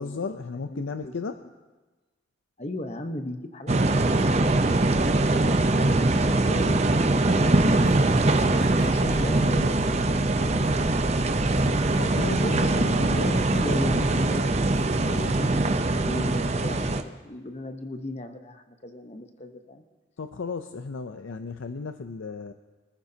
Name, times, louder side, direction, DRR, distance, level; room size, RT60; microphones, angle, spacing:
voice 1, 0.0-1.4 11.9-13.4 20.2-22.5, left 4 dB, 90° left, 8 dB, 0.5 m, -34 dB
voice 2, 0.7-1.4 2.6-4.8 5.2-7.7 8.5-10.9 12.4-19.8, left 1 dB, 35° left, 6 dB, 1.0 m, -37 dB
sound 1, 3.7-17.0, right 2 dB, 35° right, 0.7 m, -22 dB
sound 2, 7.4-15.6, equal, 70° left, 5.9 m, -42 dB
25.0 x 14.0 x 2.8 m, 1.2 s
head